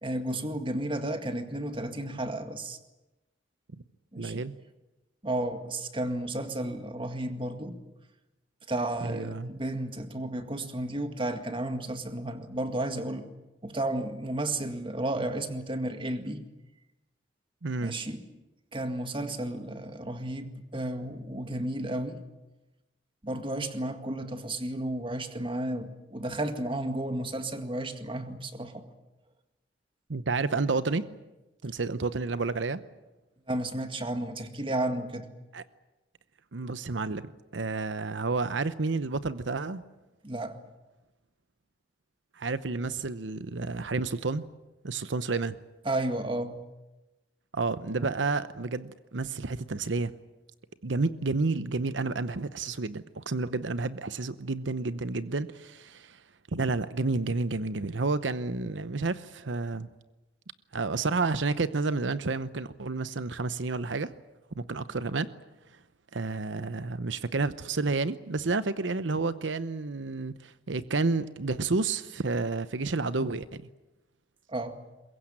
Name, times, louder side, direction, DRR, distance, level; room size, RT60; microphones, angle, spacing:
voice 1, 0.0-2.8 4.1-4.4 5.2-7.8 8.7-13.3 13.6-16.4 17.8-18.3 18.7-22.2 23.2-28.9 33.5-35.3 40.2-40.6 45.9-46.6 74.5-74.8, right 1 dB, 30° right, 2.0 m, -33 dB
voice 2, 4.2-4.6 9.0-9.5 17.6-18.0 30.1-31.1 31.6-32.8 35.5-35.6 36.5-39.8 42.4-44.5 44.8-45.6 47.5-50.1 50.8-56.2 56.5-59.9 60.7-64.1 64.6-65.3 66.1-73.7, right 3 dB, 90° right, 0.9 m, -30 dB
22.5 x 22.5 x 8.9 m
head